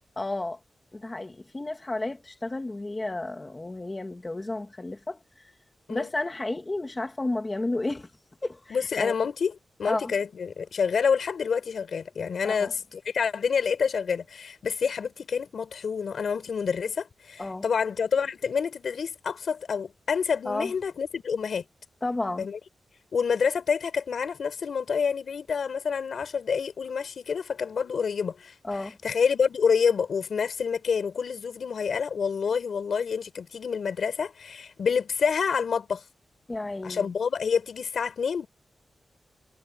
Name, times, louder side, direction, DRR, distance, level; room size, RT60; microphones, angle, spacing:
voice 1, 0.2-0.6 0.9-5.5 5.9-8.1 8.4-9.1 9.8-10.1 12.4-12.7 17.4-17.6 20.5-20.7 22.0-22.5 28.6-29.0 36.5-37.1, left 2 dB, 20° left, 1.9 m, -32 dB
voice 2, 8.7-9.5 9.8-21.6 22.4-22.6 23.1-28.5 29.0-36.0 36.8-38.5, left 6 dB, 70° left, 4.5 m, -27 dB
wide cardioid pair, 145°, 0 cm